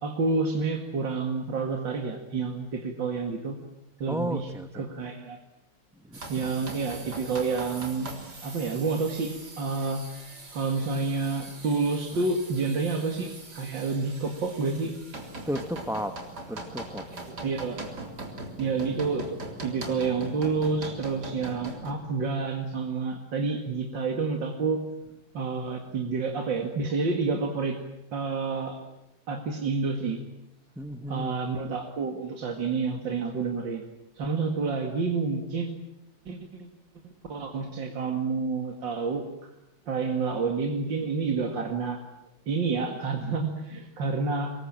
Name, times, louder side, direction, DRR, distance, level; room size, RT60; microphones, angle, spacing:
voice 1, 0.0-3.6 4.0-5.4 6.3-8.1 8.4-10.2 10.5-14.9 17.4-17.8 18.6-24.8 25.3-27.8 28.1-28.8 29.3-30.2 31.1-33.9 34.2-35.7 36.3-36.4 37.3-39.3 39.9-42.0 42.5-44.5, right 4 dB, 85° right, 3 dB, 2.8 m, -29 dB
voice 2, 4.1-4.8 6.1-6.5 15.5-16.2 16.5-17.0 30.8-31.3, equal, ahead, 8 dB, 0.8 m, -33 dB
sound 1, 6.1-21.9, right 2 dB, 60° right, 4.2 m, -41 dB
25.5 x 22.0 x 8.9 m, 0.91 s
omnidirectional pair, 2.0 m